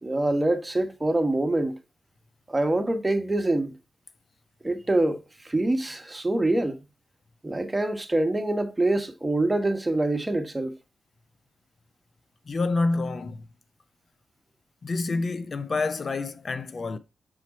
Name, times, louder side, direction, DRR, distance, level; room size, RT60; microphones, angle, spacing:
voice 1, 0.0-1.8 2.5-3.7 4.6-6.8 7.4-10.8, right 2 dB, 20° right, 1.3 m, -25 dB
voice 2, 12.5-13.4 14.8-17.0, left 3 dB, 50° left, 0.5 m, -28 dB
6.4 x 4.2 x 4.1 m
cardioid pair, 60°, 0 cm